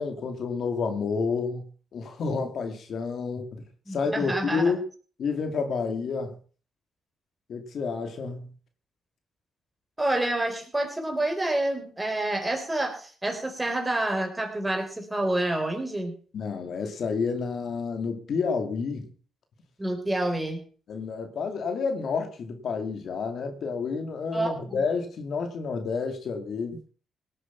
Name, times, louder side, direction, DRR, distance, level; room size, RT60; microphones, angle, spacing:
voice 1, 0.0-1.6 1.9-3.6 3.9-4.8 5.2-6.3 7.5-8.5 16.3-19.1 20.9-26.8, left 5 dB, 60° left, 6 dB, 2.4 m, -29 dB
voice 2, 3.9-4.7 10.0-16.1 19.8-20.6 24.3-24.8, right 1 dB, 15° right, 3 dB, 4.4 m, -28 dB
18.0 x 8.2 x 5.8 m, 0.41 s
cardioid pair, 90°, 0 cm